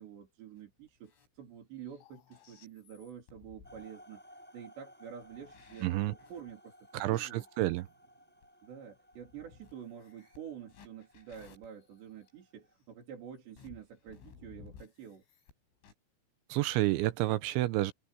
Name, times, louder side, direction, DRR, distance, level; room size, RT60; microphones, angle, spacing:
voice 1, 0.0-7.5 8.6-15.2, right 8 dB, 60° right, 5.7 m, -48 dB
sound 1, 0.6-1.4 1.8-3.9 5.0-7.8 8.4-8.5 9.1-12.3 13.5-15.5 15.8-15.9, left 6 dB, 80° left, 7.1 m, -58 dB
sound 2, 3.6-12.7, equal, ahead, 5.7 m, -59 dB
voice 2, 5.8-6.1 6.9-7.9 16.5-17.9, right 17 dB, 85° right, 2.9 m, -30 dB
omnidirectional pair, 5.7 m